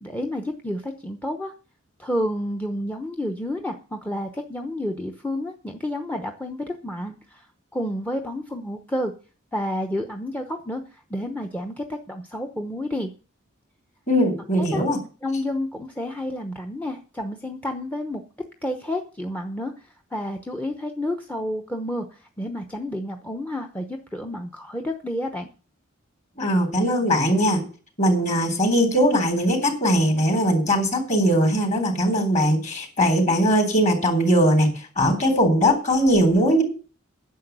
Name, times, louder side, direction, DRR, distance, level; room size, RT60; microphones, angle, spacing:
voice 1, 0.0-1.5 2.0-7.5 7.7-9.1 9.5-13.1 14.6-14.8 15.2-18.2 18.6-25.5, left 1 dB, 10° left, 6 dB, 0.9 m, -30 dB
voice 2, 14.1-15.0 26.4-27.6 28.0-36.6, equal, 35° left, 5 dB, 3.7 m, -20 dB
10.0 x 6.9 x 8.1 m, 0.37 s
head